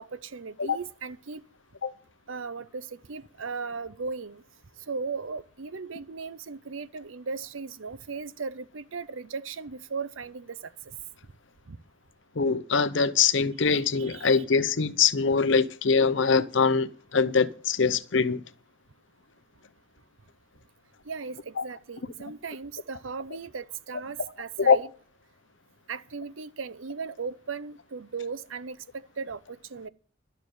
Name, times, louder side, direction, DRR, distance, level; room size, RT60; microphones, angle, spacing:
voice 1, 0.0-1.4 2.3-4.4 4.9-11.0 11.7-11.8 13.6-14.4 21.0-24.9 25.9-29.9, right 5 dB, 80° right, 0.7 m, -37 dB
voice 2, 12.4-18.4 21.6-21.7 24.6-24.8, left 5 dB, 65° left, 0.7 m, -23 dB
11.5 x 6.7 x 9.1 m
head